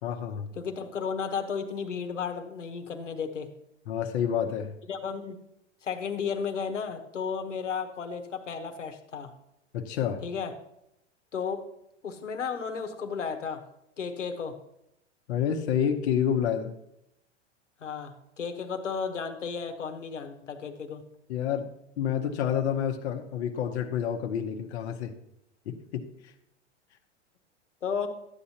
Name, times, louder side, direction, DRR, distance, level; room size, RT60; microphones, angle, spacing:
voice 1, 0.0-0.5 3.9-4.7 9.7-10.2 15.3-16.7 21.3-21.7 22.0-25.1 25.7-26.3, left 8 dB, 65° left, 3 dB, 1.0 m, -29 dB
voice 2, 0.5-3.5 4.9-5.4 5.8-9.3 10.2-10.5 11.3-11.6 12.0-13.6 14.0-14.6 17.8-21.0 27.8-28.1, left 6 dB, 90° left, 6 dB, 1.2 m, -33 dB
12.5 x 8.3 x 2.9 m, 0.83 s
hypercardioid pair, 100°, 35 cm